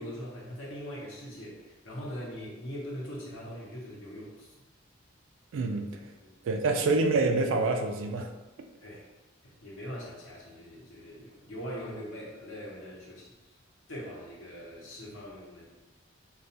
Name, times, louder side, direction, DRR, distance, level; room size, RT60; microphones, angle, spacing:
voice 1, 0.0-4.5 6.2-6.3 8.8-9.1 9.4-13.3 13.9-15.7, equal, 75° left, -4 dB, 0.7 m, -41 dB
voice 2, 5.5-5.9 6.4-8.3, right 3 dB, 70° right, 5 dB, 0.3 m, -26 dB
2.2 x 2.2 x 2.6 m, 1.1 s
head